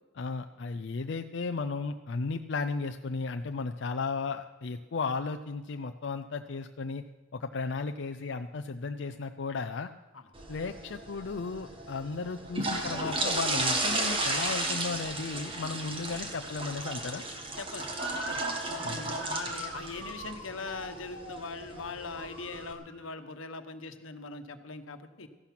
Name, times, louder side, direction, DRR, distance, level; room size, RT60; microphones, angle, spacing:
voice 1, 0.1-7.0 7.3-9.9 10.5-17.2 18.8-19.1, left 4 dB, 60° left, 7 dB, 0.5 m, -35 dB
sound 1, 10.3-22.7, right 2 dB, 25° right, 1.6 m, -34 dB
voice 2, 17.6-17.9 18.1-18.4 18.7-25.3, left 4 dB, 85° left, 8 dB, 1.2 m, -41 dB
Motor vehicle (road) / Siren, 17.9-23.1, right 2 dB, 65° right, 2.2 m, -42 dB
14.5 x 11.5 x 6.0 m, 1.3 s
head